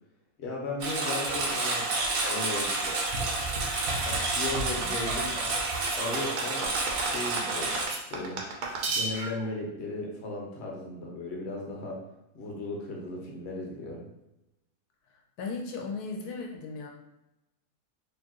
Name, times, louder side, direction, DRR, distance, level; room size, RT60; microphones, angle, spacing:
voice 1, 0.4-1.8 2.3-2.9 4.0-5.4 6.0-6.7 7.0-7.8 8.1-8.4 8.9-12.0 12.3-14.1, left 2 dB, 50° left, -1 dB, 1.1 m, -36 dB
Engine, 0.8-7.9, right 3 dB, 70° right, 1.2 m, -29 dB
sound 1, 5.9-9.5, right 3 dB, 85° right, 1.3 m, -34 dB
voice 2, 15.4-16.9, left 4 dB, 85° left, 1 dB, 1.2 m, -36 dB
4.4 x 3.1 x 3.0 m, 0.90 s
omnidirectional pair, 1.6 m